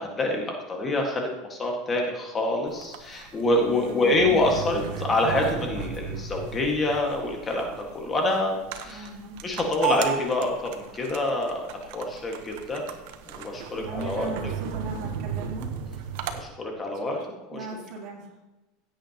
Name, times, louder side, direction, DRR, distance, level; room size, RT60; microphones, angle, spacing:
voice 1, 0.0-7.7 7.9-9.1 9.4-12.8 13.3-14.3 16.3-17.2 17.5-17.7, left 2 dB, 20° left, 1 dB, 1.8 m, -26 dB
sound 1, 2.7-16.4, right 8 dB, 70° right, 1.0 m, -35 dB
voice 2, 3.5-4.4 8.8-9.3 13.7-15.7 17.0-17.2 17.5-18.2, right 2 dB, 50° right, -2 dB, 3.3 m, -38 dB
16.5 x 8.8 x 3.0 m, 1.1 s
supercardioid pair, 135°, 0 cm